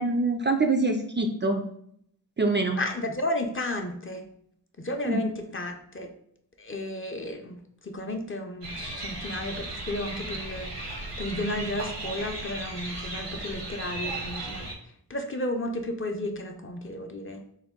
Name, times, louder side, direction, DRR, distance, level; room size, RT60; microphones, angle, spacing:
voice 1, 0.0-1.7 2.4-2.8 5.0-5.2, right 3 dB, 30° right, 4 dB, 0.4 m, -25 dB
voice 2, 2.8-4.2 4.8-6.1 6.6-7.6 7.9-14.7 15.1-17.4, left 1 dB, 30° left, 3 dB, 0.5 m, -33 dB
sound 1, 8.6-14.7, right 2 dB, 80° right, 0.9 m, -36 dB
3.9 x 2.2 x 3.6 m, 0.68 s
cardioid pair, 50°, 41 cm